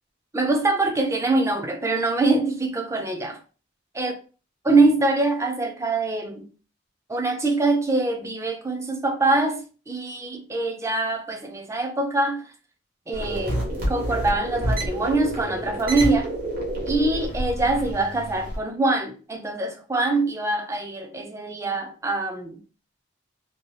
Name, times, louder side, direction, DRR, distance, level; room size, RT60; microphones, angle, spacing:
voice 1, 0.3-3.4 4.0-4.1 4.6-6.5 7.1-12.5 13.1-16.3 16.9-22.6, right 2 dB, 15° right, 0.4 m, -24 dB
sound 1, 13.1-18.6, right 1 dB, 50° right, 0.9 m, -28 dB
2.7 x 2.3 x 3.1 m
head